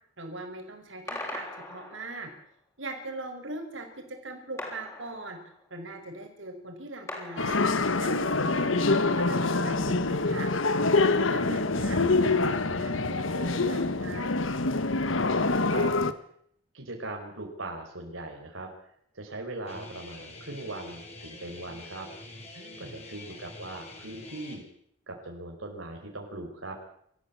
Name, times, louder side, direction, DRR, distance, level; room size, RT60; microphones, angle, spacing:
voice 1, 0.2-2.3 2.8-5.4 5.7-7.6 8.0-10.5 11.0-12.0 12.3-14.3 22.5-22.9, right 2 dB, 70° right, 4 dB, 5.1 m, -41 dB
sound 1, 1.1-2.5 4.6-5.8 7.1-8.2, left 1 dB, 15° left, 6.3 m, -41 dB
sound 2, 7.4-16.1, left 3 dB, 75° left, 1.4 m, -25 dB
voice 2, 15.6-16.2 16.7-18.7 19.1-22.1 22.8-24.6 25.1-26.8, right 2 dB, 85° right, 1 dB, 4.7 m, -40 dB
Guitar, 19.7-24.6, left 2 dB, 35° left, 6.6 m, -46 dB
26.5 x 14.5 x 8.5 m, 0.67 s
head